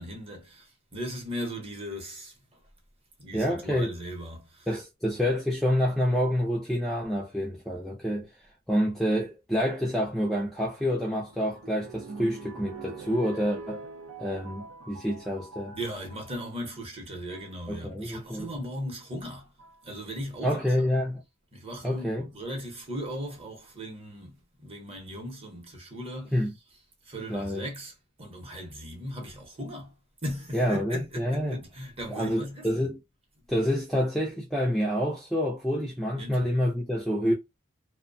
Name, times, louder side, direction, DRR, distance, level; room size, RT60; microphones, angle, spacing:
voice 1, 0.0-2.6 3.2-4.7 15.7-19.5 19.8-20.9 21.5-24.3 24.6-26.3 27.0-27.9 28.2-29.9 30.2-32.9 36.2-36.4, equal, 25° right, 0.8 m, -38 dB
voice 2, 3.3-3.9 4.7-8.3 8.7-13.8 14.2-15.7 17.7-18.5 20.4-21.2 21.8-22.3 26.3-26.5 27.3-27.6 30.5-31.6 32.1-33.0 33.5-37.3, equal, ahead, 0.4 m, -28 dB
sound 1, 10.7-16.4 17.1-17.6 18.8-18.9 19.6-19.9 22.0-22.7 23.3-23.4 23.6-23.7, right 3 dB, 75° right, 0.7 m, -44 dB
2.6 x 2.1 x 2.5 m
head